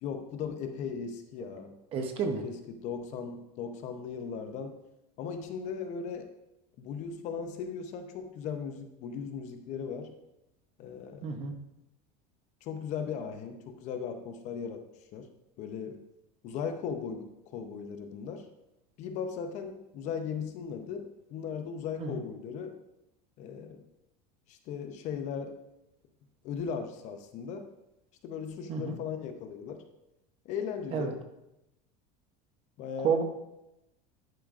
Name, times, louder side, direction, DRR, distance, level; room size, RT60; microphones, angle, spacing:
voice 1, 0.0-1.8 2.3-4.8 5.2-6.3 6.8-10.1 10.8-11.3 12.6-14.8 15.1-15.3 15.6-16.0 16.4-18.5 19.0-22.8 23.4-23.8 24.5-25.6 26.4-27.7 28.2-29.8 30.4-31.2 32.8-33.1, left 6 dB, 35° left, 6 dB, 0.6 m, -37 dB
voice 2, 1.9-2.4 11.2-11.5 22.0-22.2 28.7-28.9 30.9-31.1 33.0-33.2, right 6 dB, 30° right, 6 dB, 0.6 m, -30 dB
10.5 x 5.0 x 2.4 m, 0.89 s
cardioid pair, 170°, 20 cm